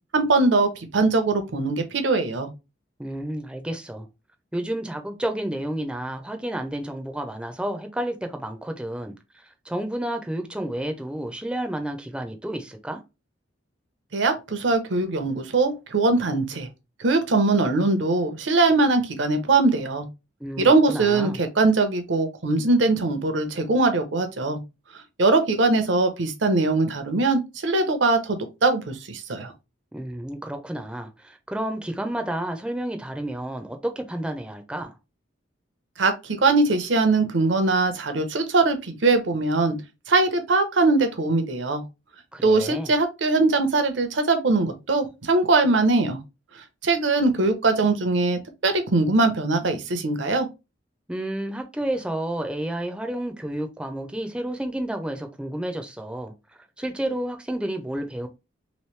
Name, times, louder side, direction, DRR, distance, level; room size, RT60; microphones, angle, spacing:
voice 1, 0.1-2.5 14.1-16.7 17.0-20.1 20.6-24.6 25.2-29.5 36.0-39.8 40.1-41.8 42.4-46.2 46.8-50.5, right 3 dB, 75° right, 0.7 m, -21 dB
voice 2, 3.0-4.1 4.5-13.0 20.4-21.4 29.9-34.9 42.3-42.9 51.1-56.3 56.8-58.3, right 1 dB, 5° right, 0.4 m, -31 dB
3.1 x 3.0 x 3.1 m
head